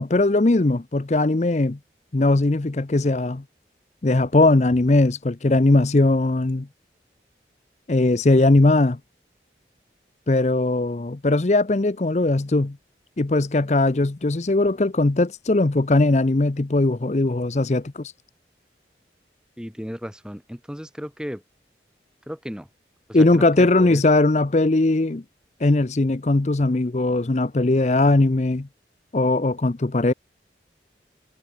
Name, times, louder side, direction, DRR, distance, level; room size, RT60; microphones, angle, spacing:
voice 1, 0.0-1.8 2.1-3.4 4.0-6.7 7.9-9.0 10.3-12.8 13.2-18.1 23.1-25.2 25.6-28.7 29.1-30.1, left 2 dB, 40° left, 0.6 m, -19 dB
voice 2, 19.6-21.4 22.3-22.7 23.1-24.0, equal, 5° right, 1.8 m, -35 dB
head